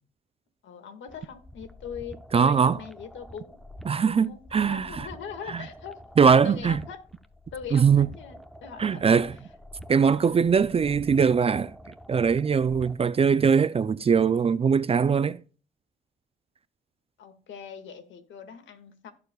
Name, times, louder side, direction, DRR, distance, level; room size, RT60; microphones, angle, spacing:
voice 1, 0.6-3.6 4.0-7.0 7.5-9.2 9.9-10.4 17.2-19.1, left 7 dB, 70° left, 1.9 m, -41 dB
sound 1, 1.1-13.1, left 1 dB, ahead, 0.9 m, -47 dB
voice 2, 2.3-2.8 3.9-5.1 5.5-5.6 6.2-6.8 7.7-8.1 8.8-9.4 9.9-11.8 12.1-15.4, right 6 dB, 30° right, 0.4 m, -21 dB
16.5 x 6.9 x 2.3 m
cardioid pair, 90°, 20 cm